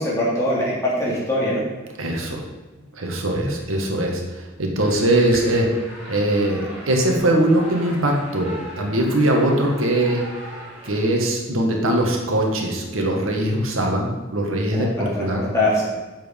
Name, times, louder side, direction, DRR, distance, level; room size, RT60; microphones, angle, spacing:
voice 1, 0.0-1.6 14.7-15.9, left 1 dB, 15° left, -7 dB, 3.1 m, -22 dB
voice 2, 2.0-2.4 2.9-5.8 6.1-10.3 10.8-15.4, right 1 dB, 90° right, 1 dB, 1.8 m, -21 dB
sound 1, 3.3-5.7, equal, 65° left, 1.9 m, -37 dB
sound 2, 4.8-11.1, equal, 5° right, 3.4 m, -39 dB
7.8 x 7.5 x 5.4 m, 1.2 s
head